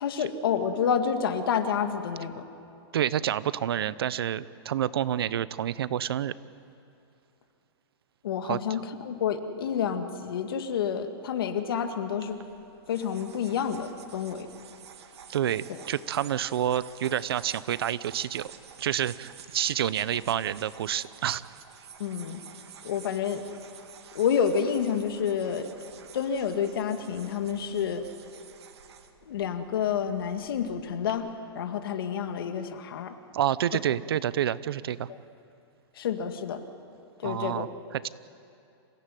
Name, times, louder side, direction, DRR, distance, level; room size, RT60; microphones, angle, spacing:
voice 1, 0.0-2.4 8.2-12.4 12.9-14.5 22.0-22.4 22.8-23.4 24.1-25.7 26.1-28.1 29.3-31.3 31.5-33.1 36.0-36.6 37.2-37.7, left 7 dB, 60° left, 7 dB, 2.1 m, -29 dB
voice 2, 2.9-6.3 8.4-8.6 15.3-18.5 18.8-21.4 33.3-35.1 37.2-38.1, right 10 dB, 65° right, 17 dB, 0.8 m, -28 dB
sound 1, 12.2-31.1, right 7 dB, 85° right, 2.3 m, -50 dB
27.5 x 16.5 x 9.3 m, 2.6 s
hypercardioid pair, 170°, 13 cm